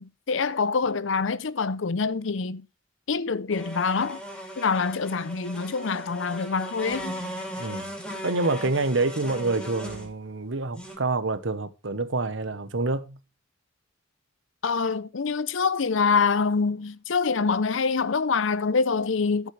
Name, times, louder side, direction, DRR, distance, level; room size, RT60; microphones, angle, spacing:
voice 1, 0.0-2.6 3.1-4.2 4.6-7.2 14.6-19.5, left 5 dB, 70° left, 0.6 m, -25 dB
sound 1, 3.5-10.1 10.7-11.0, equal, 5° left, 3.5 m, -38 dB
voice 2, 8.2-13.2, right 3 dB, 65° right, 1.1 m, -27 dB
13.0 x 7.4 x 3.3 m
head